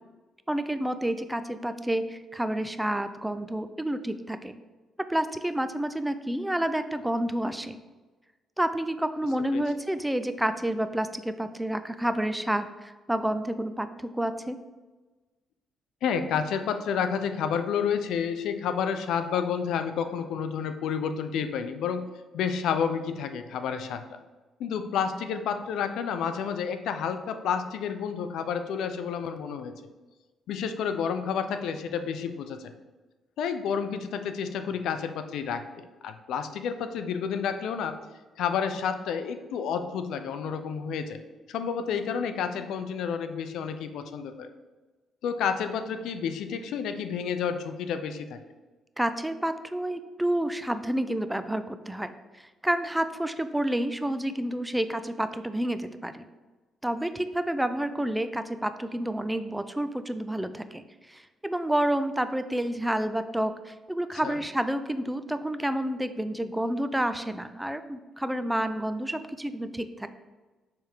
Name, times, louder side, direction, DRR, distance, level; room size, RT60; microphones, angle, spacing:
voice 1, 0.5-4.6 5.1-7.8 8.6-14.6 49.0-56.2 56.8-70.1, right 1 dB, 5° right, 11 dB, 0.4 m, -29 dB
voice 2, 16.0-24.1 24.6-29.7 30.5-32.7 33.4-38.0 38.4-41.2 41.5-44.5 45.2-48.4 64.2-64.3, left 7 dB, 80° left, 9 dB, 0.5 m, -30 dB
6.6 x 3.5 x 4.5 m, 1.2 s
cardioid pair, 90°, 0 cm